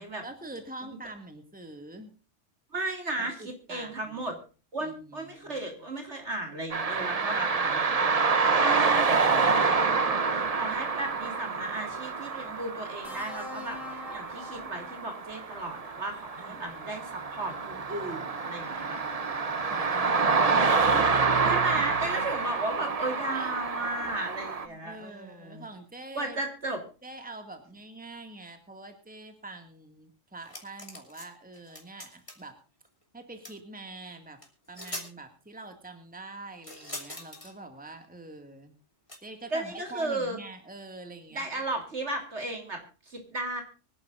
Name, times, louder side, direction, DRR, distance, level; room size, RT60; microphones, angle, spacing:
voice 1, 0.0-2.1 3.2-4.4 4.8-5.7 7.1-8.1 16.5-17.0 18.8-21.5 23.3-23.6 24.7-26.4 27.0-32.6 33.1-34.4 34.7-38.8 39.2-41.5, right 2 dB, 5° right, 6 dB, 2.1 m, -45 dB
voice 2, 2.7-4.4 4.7-7.8 8.5-19.0 21.4-25.6 26.1-26.8 39.5-40.4 41.3-43.6, right 2 dB, 60° right, 4 dB, 3.6 m, -35 dB
sound 1, 6.7-24.7, right 4 dB, 35° right, 0.9 m, -27 dB
sound 2, 13.0-15.3 16.6-16.8, left 5 dB, 85° left, 2.6 m, -45 dB
sound 3, 30.4-31.3 31.5-32.5 33.4-33.6 34.4-34.5 34.7-35.1 36.6-37.5 39.1-39.2, left 1 dB, 25° left, 3.1 m, -41 dB
25.0 x 11.0 x 2.6 m, 0.35 s
omnidirectional pair, 1.3 m